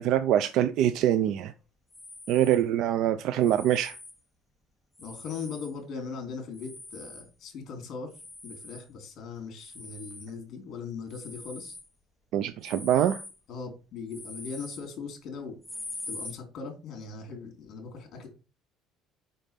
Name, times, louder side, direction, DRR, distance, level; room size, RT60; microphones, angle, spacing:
voice 1, 0.0-1.5 2.3-4.0 12.3-13.2, right 11 dB, 60° right, 0.4 m, -24 dB
sound 1, 1.9-2.7 3.4-4.2 5.0-5.8 6.5-7.3 8.1-8.9 9.6-10.3 11.1-11.9 12.6-13.4 14.1-14.9 15.6-16.4, left 2 dB, 5° left, 0.9 m, -43 dB
voice 2, 5.0-8.1 8.4-11.8 13.5-15.6 16.1-18.3, left 5 dB, 40° left, 2.9 m, -39 dB
5.3 x 5.2 x 5.6 m
cardioid pair, 160°, 0 cm